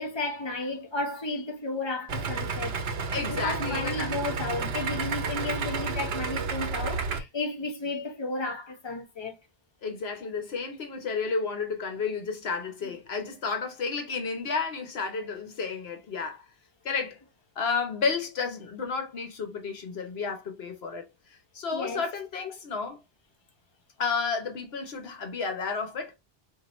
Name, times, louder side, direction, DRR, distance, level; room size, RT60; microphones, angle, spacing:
voice 1, 0.0-2.8 3.3-9.4 21.7-22.0, left 2 dB, 25° left, 1.1 m, -33 dB
Idling, 2.1-7.2, right 4 dB, 85° right, 1.0 m, -31 dB
voice 2, 3.1-4.1 9.8-16.4 16.8-17.2 17.6-23.0 24.0-26.1, left 5 dB, 80° left, 1.2 m, -32 dB
4.5 x 2.7 x 3.0 m
omnidirectional pair, 1.0 m